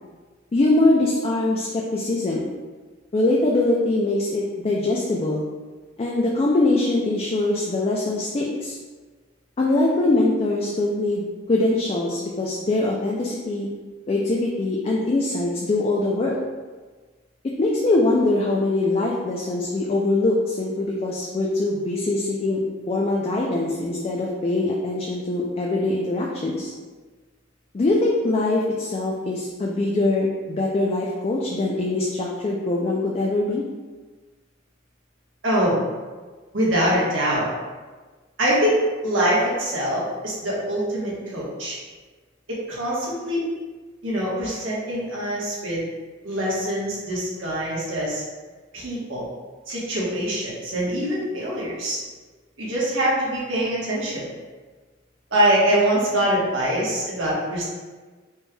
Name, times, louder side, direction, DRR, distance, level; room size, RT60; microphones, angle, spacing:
voice 1, 0.5-2.5 3.1-5.4 6.0-8.8 9.6-13.7 14.1-16.3 17.6-22.6 22.9-26.7 27.7-33.6, left 2 dB, 30° left, -2 dB, 0.4 m, -22 dB
voice 2, 35.4-35.8 36.5-37.5 38.4-41.8 42.5-43.5 44.0-45.8 46.2-48.2 48.7-49.3 49.7-52.0 52.6-54.2 55.3-57.6, right 1 dB, 80° right, -6 dB, 1.2 m, -24 dB
4.3 x 3.2 x 2.2 m, 1.4 s
head